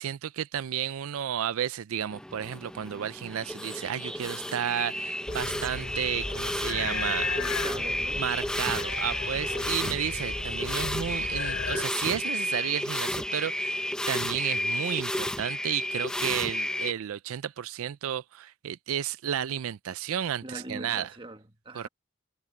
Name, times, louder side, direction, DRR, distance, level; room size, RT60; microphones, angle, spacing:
voice 1, 0.0-7.3 8.2-21.1 21.7-21.9, right 9 dB, 75° right, 0.4 m, -32 dB
sound 1, 2.1-16.9, left 1 dB, 5° left, 0.6 m, -32 dB
sound 2, 5.3-11.8, left 4 dB, 80° left, 2.7 m, -36 dB
voice 2, 7.4-8.3 20.4-21.9, right 2 dB, 25° right, 1.4 m, -42 dB
head